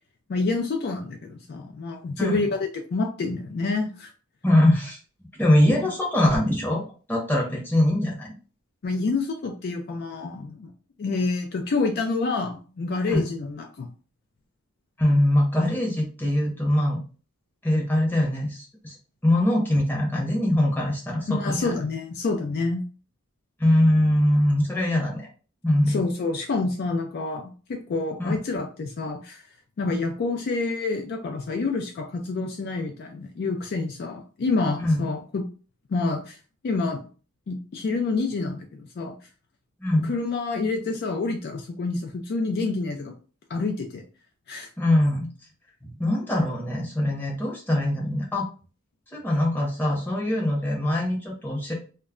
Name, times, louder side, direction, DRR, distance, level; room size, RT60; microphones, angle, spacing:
voice 1, 0.3-4.1 8.8-10.7 11.0-13.9 21.3-22.8 25.9-29.4 29.8-35.4 35.9-36.4 36.6-37.1 37.5-39.2 40.0-43.1 43.5-44.0 44.5-44.7, left 3 dB, 50° left, 3 dB, 0.3 m, -28 dB
voice 2, 4.4-5.0 5.4-8.3 13.1-13.2 15.0-17.0 17.6-19.0 19.2-21.7 23.6-25.3 25.6-26.0 28.2-28.3 29.8-30.0 34.8-35.1 39.8-40.1 44.8-45.3 45.8-48.5 49.1-51.7, left 1 dB, 10° left, -2 dB, 0.7 m, -22 dB
2.2 x 2.0 x 3.5 m, 0.37 s
head